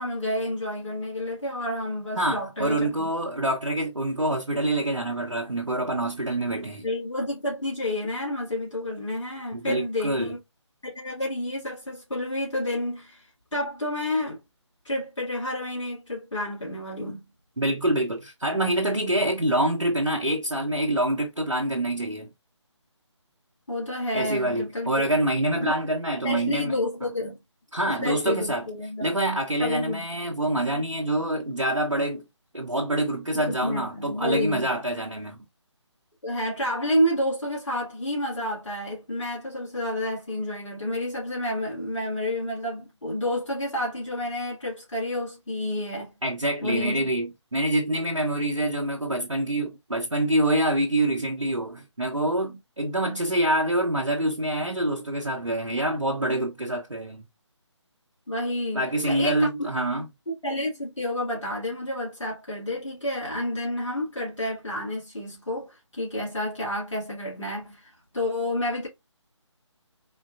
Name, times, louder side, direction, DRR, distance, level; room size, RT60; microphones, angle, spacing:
voice 1, 0.0-3.1 6.8-10.4 10.8-14.4 14.8-17.3 23.7-25.2 25.5-25.7 26.2-27.4 28.0-29.1 29.6-30.1 33.3-34.7 36.2-46.1 46.6-47.0 58.3-59.7 60.4-68.9, left 1 dB, 75° left, 2.0 m, -30 dB
voice 2, 2.2-6.8 9.5-10.3 17.6-22.3 24.1-27.1 27.7-28.6 29.0-32.2 32.5-35.4 46.2-57.3 58.7-60.1, right 1 dB, 90° right, 0.9 m, -26 dB
4.2 x 2.5 x 2.4 m
figure-of-eight pair, 150°, 16 cm